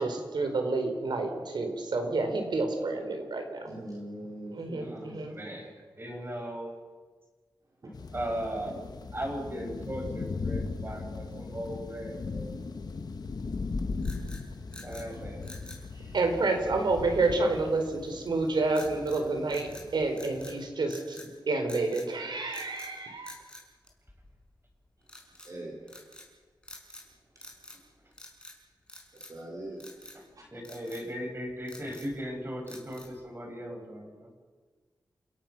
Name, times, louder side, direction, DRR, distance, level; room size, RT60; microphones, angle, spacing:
voice 1, 0.0-3.7 4.5-5.3 16.1-21.2 21.5-23.3, right 3 dB, 75° right, 5 dB, 4.1 m, -29 dB
voice 2, 3.7-5.6 7.8-8.0 15.1-15.2 15.8-16.2 25.4-25.8 29.1-30.5, right 1 dB, 50° right, -2 dB, 4.7 m, -43 dB
voice 3, 4.8-5.7 6.0-6.7 8.1-12.6 14.8-15.5 30.5-34.3, equal, 30° right, 2 dB, 6.3 m, -37 dB
sound 1, 7.9-20.6, left 4 dB, 60° left, 1.4 m, -38 dB
sound 2, 14.0-15.1 15.4-15.9 18.7-19.2 19.5-20.6 20.9-21.3 21.7-22.1 22.5-22.9 23.2-24.4 25.1-25.5 25.9-26.3 26.6-27.1 27.4-27.9 28.1-28.6 28.9-29.4 29.8-30.2 30.6-31.1 31.5-32.2 32.7-33.2, left 1 dB, 15° left, 5.5 m, -48 dB
29.5 x 17.0 x 6.0 m, 1.5 s
wide cardioid pair, 90°, 8 cm